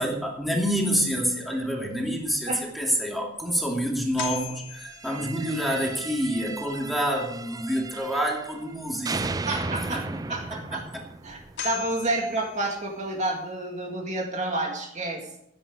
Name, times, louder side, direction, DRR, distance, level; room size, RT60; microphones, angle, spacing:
voice 1, 0.0-9.3 9.9-10.4 10.7-10.8, equal, ahead, -2 dB, 2.5 m, -27 dB
sound 1, 3.4-3.5 4.2-5.8 10.9-11.0 11.6-13.2, left 9 dB, 60° left, 2.8 m, -38 dB
sound 2, 4.9-8.7 9.1-12.1, right 3 dB, 20° right, 0.4 m, -36 dB
voice 2, 9.5-10.8 11.2-15.2, right 2 dB, 40° right, 1 dB, 2.1 m, -30 dB
15.0 x 9.9 x 4.9 m, 0.79 s
head